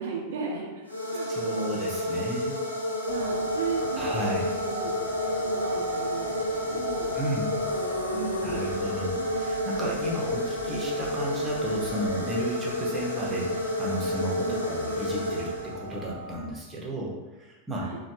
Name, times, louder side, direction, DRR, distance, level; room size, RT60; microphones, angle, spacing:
voice 1, 0.0-1.9 3.0-5.1 5.4-7.2 8.1-8.7 14.5-14.8 17.8-18.0, right 5 dB, 60° right, -3 dB, 0.4 m, -36 dB
sound 1, 0.8-16.1, left 1 dB, 85° left, 0.5 m, -30 dB
voice 2, 1.3-2.6 4.0-4.5 7.1-7.6 8.4-17.8, right 1 dB, 15° right, -3 dB, 0.7 m, -33 dB
sound 2, 3.1-16.4, left 1 dB, 15° left, 1.0 m, -37 dB
3.1 x 2.3 x 2.9 m, 1.2 s
figure-of-eight pair, 90°, 0 cm